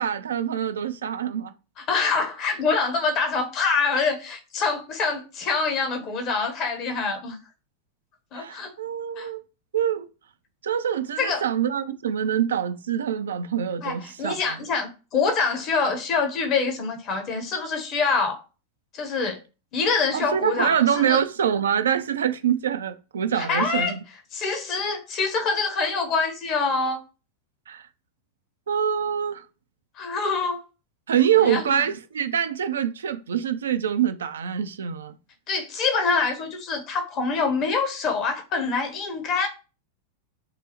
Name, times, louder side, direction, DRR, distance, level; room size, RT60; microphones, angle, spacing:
voice 1, 0.0-1.5 8.3-9.4 9.7-10.1 10.6-14.6 20.1-24.0 27.7-27.9 28.7-29.4 31.1-35.2, right 9 dB, 65° right, 0.3 m, -25 dB
voice 2, 1.8-7.4 8.3-8.7 9.1-9.3 11.2-11.4 13.8-18.4 18.9-19.4 19.7-21.2 23.4-23.9 24.3-27.0 30.0-30.6 31.4-31.8 35.5-39.5, left 4 dB, 35° left, 0.9 m, -25 dB
4.6 x 2.0 x 2.9 m
figure-of-eight pair, 90°, 0 cm